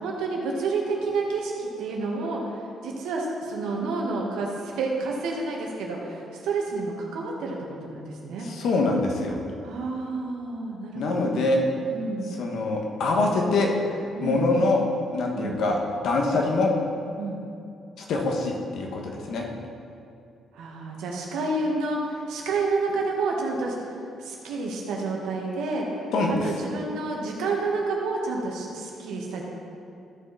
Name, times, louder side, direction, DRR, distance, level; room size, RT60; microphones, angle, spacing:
voice 1, 0.0-2.5 2.8-7.6 7.8-8.5 9.6-11.5 11.9-12.4 14.1-14.6 15.3-15.6 17.2-17.4 20.5-23.9 24.2-29.4, right 3 dB, 90° right, -1 dB, 1.6 m, -29 dB
voice 2, 8.4-9.4 10.9-11.6 12.4-14.8 15.1-15.8 16.0-16.7 18.0-19.5 26.1-26.4, left 2 dB, 75° left, 1 dB, 1.4 m, -24 dB
14.0 x 5.3 x 4.1 m, 2.5 s
cardioid pair, 90°, 0 cm